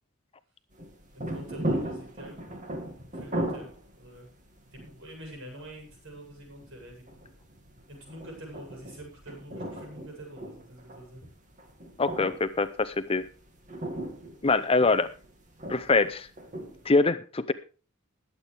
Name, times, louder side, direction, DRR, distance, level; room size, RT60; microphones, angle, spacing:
sound 1, 0.7-16.9, right 1 dB, 35° right, 2.2 m, -38 dB
voice 1, 1.1-2.4 2.7-3.7 4.0-4.3 4.7-7.0 7.9-11.3, right 1 dB, 65° right, 1 dB, 8.0 m, -46 dB
voice 2, 12.0-13.2 14.4-15.1 15.7-16.3 16.9-17.5, left 3 dB, 25° left, 11 dB, 0.6 m, -24 dB
21.0 x 8.4 x 3.5 m, 0.35 s
head